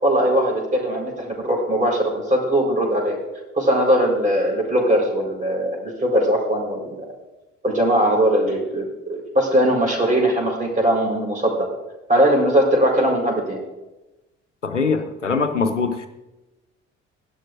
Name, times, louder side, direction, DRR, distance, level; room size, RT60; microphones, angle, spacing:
voice 1, 0.0-3.2 3.6-7.0 7.6-11.7 12.1-13.6, right 1 dB, 20° right, -1 dB, 4.4 m, -20 dB
voice 2, 14.6-16.1, left 4 dB, 90° left, 8 dB, 0.6 m, -22 dB
17.0 x 11.5 x 2.6 m, 1.0 s
figure-of-eight pair, 45°, 35 cm